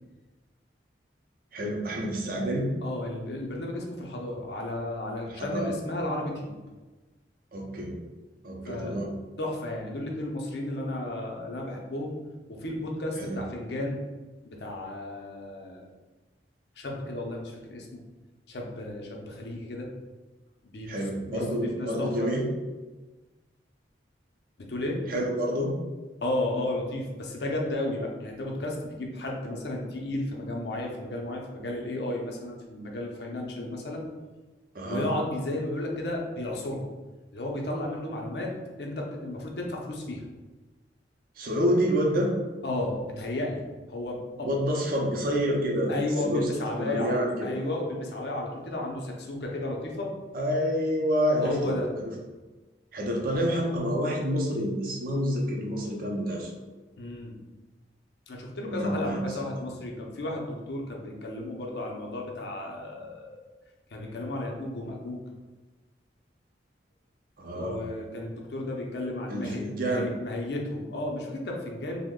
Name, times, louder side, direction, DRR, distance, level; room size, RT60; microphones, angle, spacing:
voice 1, 1.5-2.7 5.3-5.7 7.5-7.9 8.4-9.1 13.2-13.4 20.9-22.4 25.1-25.7 34.7-35.1 41.4-42.3 44.4-45.9 46.2-46.5 46.8-47.5 50.3-51.6 52.9-56.6 58.7-59.5 67.4-67.8 69.3-70.1, equal, 50° right, 0 dB, 0.5 m, -28 dB
voice 2, 2.8-6.6 8.7-9.0 9.4-12.2 12.5-14.0 14.4-15.8 16.8-17.9 18.5-19.9 20.6-20.9 21.3-22.3 24.6-25.0 26.2-34.0 34.8-36.8 37.3-38.5 38.8-40.2 42.6-43.6 43.9-44.5 45.9-50.1 51.4-51.9 57.0-57.4 58.3-63.5 63.9-65.2 67.5-72.1, left 1 dB, 60° left, 0 dB, 0.6 m, -33 dB
3.0 x 2.1 x 3.6 m, 1.2 s
head